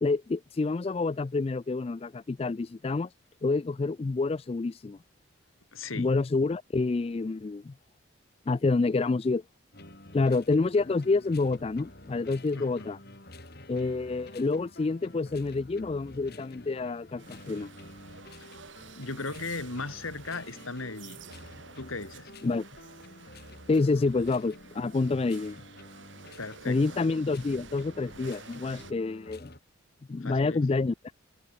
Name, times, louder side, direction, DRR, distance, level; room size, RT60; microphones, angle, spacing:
voice 1, 0.0-3.1 3.4-5.0 6.0-7.7 8.5-9.4 10.1-13.0 13.7-17.7 22.4-22.6 23.7-25.6 26.7-29.5 30.1-30.9, left 3 dB, 30° left, 0.3 m, -28 dB
voice 2, 5.7-6.1 12.5-12.9 18.4-18.6 19.0-21.2 21.8-22.3 26.4-26.8 30.1-30.6, left 3 dB, 80° left, 2.6 m, -37 dB
sound 1, 9.7-29.6, left 1 dB, 50° left, 7.1 m, -50 dB
sound 2, 17.2-28.9, right 5 dB, 60° right, 1.5 m, -51 dB
head